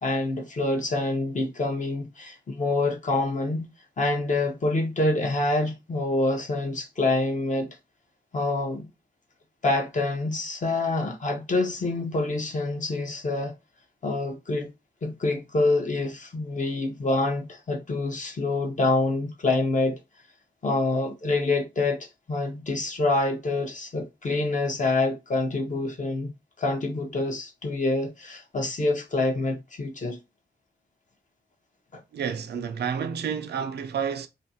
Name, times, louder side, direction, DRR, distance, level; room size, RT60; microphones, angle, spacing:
voice 1, 0.0-3.7 4.0-7.7 8.3-8.9 9.6-13.5 14.0-14.7 15.0-20.0 20.6-26.3 26.6-30.2 31.9-32.0, left 2 dB, 45° left, 0.7 m, -26 dB
voice 2, 32.1-34.3, right 7 dB, 70° right, 0.4 m, -30 dB
2.5 x 2.2 x 2.6 m
cardioid pair, 65°, 18 cm